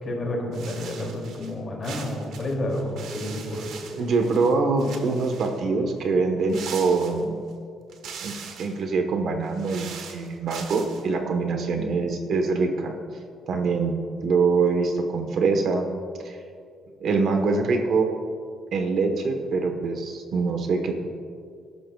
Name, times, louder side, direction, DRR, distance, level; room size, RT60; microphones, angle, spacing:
voice 1, 0.0-3.7, left 1 dB, 30° left, -1 dB, 2.8 m, -30 dB
sound 1, 0.5-1.5 1.8-4.5 4.8-5.6 6.5-7.5 7.9-8.8 9.4-11.0, right 6 dB, 75° right, 1.4 m, -41 dB
voice 2, 3.9-7.4 8.2-8.3 8.6-12.9 13.5-15.8 16.2-16.4 17.0-18.1 18.7-21.0, right 4 dB, 55° right, 4 dB, 1.2 m, -24 dB
20.5 x 12.0 x 2.4 m, 2.2 s
cardioid pair, 170°, 0 cm